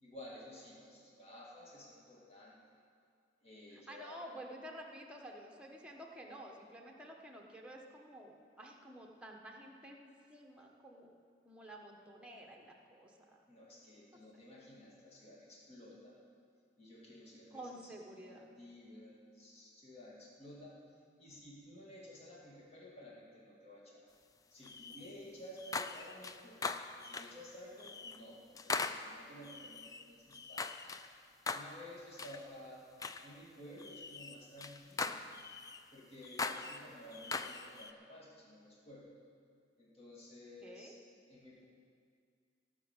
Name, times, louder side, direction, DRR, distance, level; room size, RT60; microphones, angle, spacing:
voice 1, 0.0-2.8 3.4-4.3 13.5-16.2 16.8-18.0 18.2-20.8 21.2-24.0 24.5-26.6 27.0-31.0 31.5-32.9 33.2-35.2 35.9-39.1 39.8-41.0 41.3-41.6, left 1 dB, 35° left, -4 dB, 2.3 m, -53 dB
voice 2, 3.7-11.1 11.4-13.4 17.5-18.5 40.6-41.0, right 1 dB, 5° right, 0 dB, 1.2 m, -51 dB
sound 1, 24.6-25.1 25.6-27.4 27.8-28.2 28.6-31.1 31.5-31.8 32.2-32.4 33.0-33.3 33.8-35.8 36.2-37.9, left 4 dB, 20° left, 0.4 m, -41 dB
16.5 x 6.1 x 7.3 m, 2.2 s
head